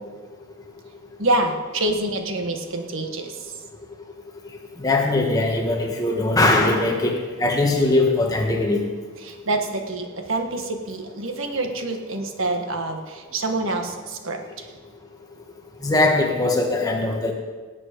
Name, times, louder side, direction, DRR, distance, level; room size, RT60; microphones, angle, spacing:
voice 1, 1.2-3.5 9.2-14.8, right 2 dB, 80° right, 5 dB, 1.5 m, -26 dB
voice 2, 4.8-8.9 15.8-17.3, left 2 dB, 15° left, 1 dB, 1.5 m, -20 dB
18.5 x 8.4 x 5.2 m, 1.4 s
head